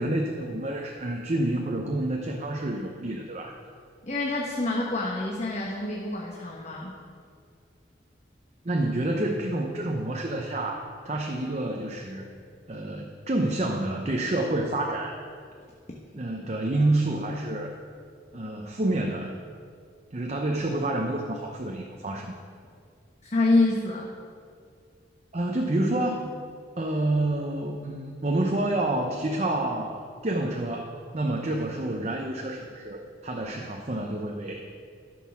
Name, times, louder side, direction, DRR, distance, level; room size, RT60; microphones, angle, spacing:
voice 1, 0.0-3.5 8.6-12.3 12.7-15.2 16.1-17.7 18.3-19.3 20.1-22.3 25.3-26.3 26.8-34.6, right 1 dB, 35° right, 2 dB, 0.7 m, -28 dB
voice 2, 4.0-6.9 23.2-24.1, left 2 dB, 40° left, -2 dB, 1.0 m, -26 dB
12.0 x 6.3 x 6.1 m, 2.2 s
head